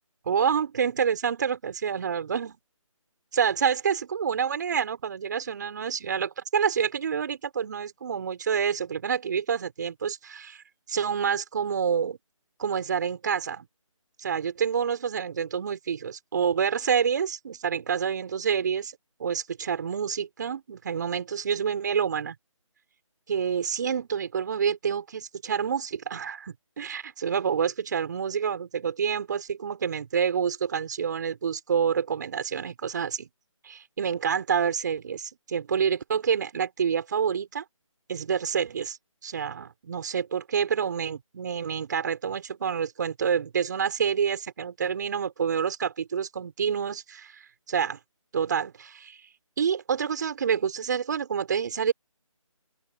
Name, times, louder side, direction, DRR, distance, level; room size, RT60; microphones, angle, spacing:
voice 1, 0.3-2.6 3.3-10.6 10.9-12.2 12.6-13.7 14.2-18.9 19.2-22.3 23.3-33.3 33.6-37.6 38.1-39.0 39.2-47.4 47.7-48.0 48.3-49.2 49.6-51.9, right 7 dB, 35° right, 6.3 m, -28 dB
open air
figure-of-eight pair, 165°, 17 cm